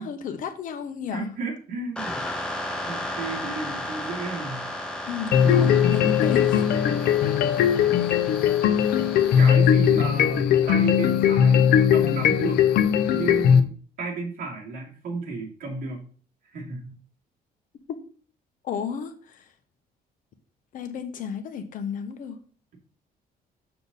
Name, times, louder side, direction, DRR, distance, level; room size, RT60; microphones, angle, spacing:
voice 1, 0.0-1.3 5.1-6.6 8.0-8.2 9.9-10.0 18.6-19.5 20.7-22.4, left 7 dB, 55° left, 8 dB, 1.1 m, -33 dB
voice 2, 1.1-2.2 2.8-4.7 5.4-6.1 9.4-12.6 13.1-16.1 16.5-16.9, right 3 dB, 65° right, 0 dB, 2.5 m, -33 dB
sound 1, 2.0-9.5, left 1 dB, 5° left, 1.2 m, -34 dB
sound 2, 5.3-13.6, left 8 dB, 85° left, 0.8 m, -19 dB
6.8 x 6.8 x 4.1 m, 0.41 s
cardioid pair, 165°, 16 cm